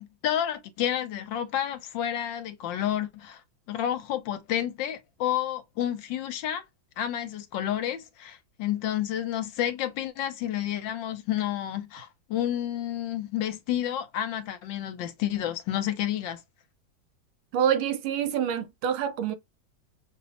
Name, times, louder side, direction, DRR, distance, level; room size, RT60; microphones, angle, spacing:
voice 1, 0.0-3.4 3.7-6.6 7.0-16.4, left 11 dB, 75° left, 1.3 m, -30 dB
voice 2, 17.5-19.4, right 9 dB, 85° right, 1.5 m, -26 dB
5.7 x 2.0 x 2.8 m
omnidirectional pair, 2.2 m